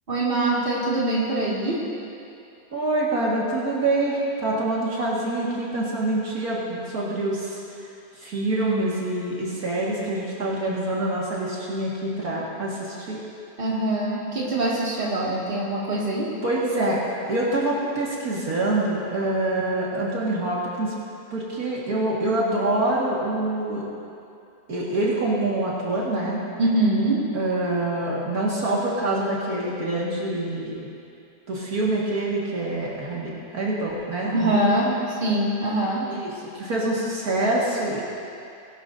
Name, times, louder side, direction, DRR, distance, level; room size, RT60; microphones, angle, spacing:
voice 1, 0.1-1.9 13.6-16.3 26.6-27.3 34.3-36.1, right 1 dB, 35° right, -6 dB, 2.3 m, -23 dB
voice 2, 2.7-7.6 8.2-13.2 16.4-17.0 17.3-20.9 21.3-23.9 24.7-26.4 27.3-30.9 31.5-34.7 36.1-38.0, right 2 dB, 65° right, -6 dB, 2.3 m, -25 dB
20.5 x 12.0 x 2.6 m, 2.6 s
omnidirectional pair, 1.7 m